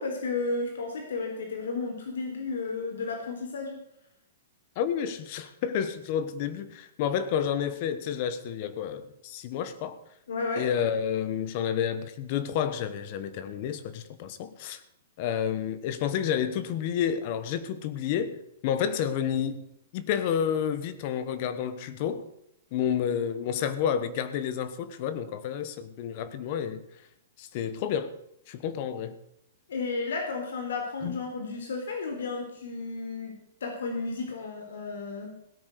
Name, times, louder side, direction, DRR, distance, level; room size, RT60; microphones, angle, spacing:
voice 1, 0.0-3.8 10.3-10.6 29.7-33.3 33.6-35.3, left 3 dB, 80° left, 3.8 m, -33 dB
voice 2, 4.8-10.0 10.6-14.8 15.2-19.6 19.9-22.3 22.7-26.8 27.4-28.2 28.5-29.2 31.0-31.2, left 8 dB, 30° left, 1.1 m, -30 dB
17.0 x 8.9 x 6.7 m
hypercardioid pair, 180°, 0 cm